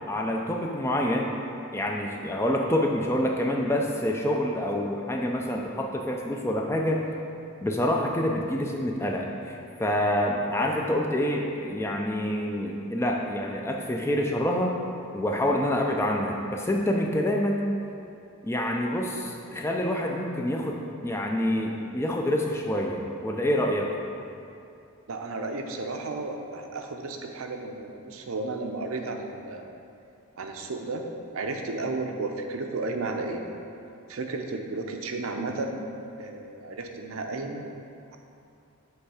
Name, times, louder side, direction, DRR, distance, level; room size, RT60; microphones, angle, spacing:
voice 1, 0.1-1.4 1.7-7.0 7.6-14.7 15.1-17.7 18.4-23.9, left 1 dB, 10° left, 1 dB, 0.3 m, -27 dB
voice 2, 25.1-29.6 30.4-31.0 31.3-33.4 34.1-35.9 36.2-37.6, right 3 dB, 75° right, 3 dB, 0.6 m, -33 dB
8.1 x 3.4 x 4.8 m, 2.6 s
head